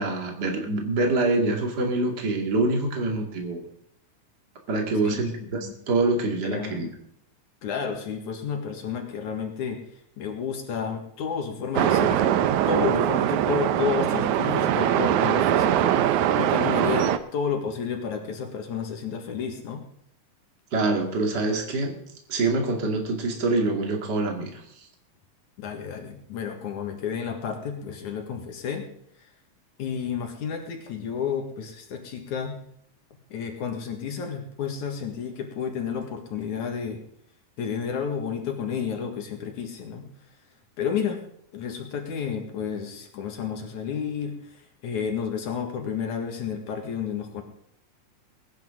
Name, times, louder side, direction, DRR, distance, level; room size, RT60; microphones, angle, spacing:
voice 1, 0.0-3.6 4.7-6.9 20.7-22.0 22.3-24.6, right 2 dB, 35° right, 2 dB, 2.7 m, -25 dB
voice 2, 5.0-5.7 6.4-6.9 7.6-9.8 10.2-12.3 12.7-19.8 25.6-28.8 29.8-32.5 33.3-37.0 37.6-40.1 40.8-41.2 41.5-47.4, left 7 dB, 70° left, 4 dB, 3.2 m, -31 dB
sound 1, 11.8-17.2, right 11 dB, 75° right, 2.1 m, -22 dB
21.0 x 10.5 x 3.8 m, 0.71 s
omnidirectional pair, 3.6 m